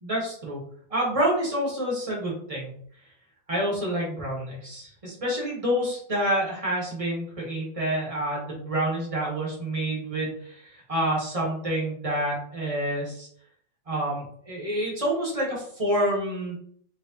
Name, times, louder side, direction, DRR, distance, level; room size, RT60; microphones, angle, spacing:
voice 1, 0.0-0.6 0.9-2.7 3.5-13.3 13.9-16.6, right 1 dB, 20° right, -4 dB, 1.2 m, -28 dB
4.0 x 3.1 x 2.8 m, 0.62 s
omnidirectional pair, 2.0 m